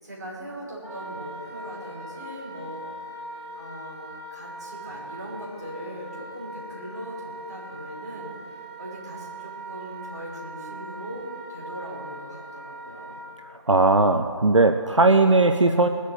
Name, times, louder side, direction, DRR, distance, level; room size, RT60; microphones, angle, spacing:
voice 1, 0.0-2.8 3.5-8.3 8.8-13.2, equal, 35° right, -5 dB, 5.0 m, -39 dB
Wind instrument woodwind instrument, 0.8-13.3, right 1 dB, 20° left, 4.7 m, -40 dB
voice 2, 13.7-15.9, right 3 dB, 75° right, 7 dB, 0.8 m, -18 dB
19.0 x 8.4 x 7.7 m, 2.5 s
figure-of-eight pair, 165°, 16 cm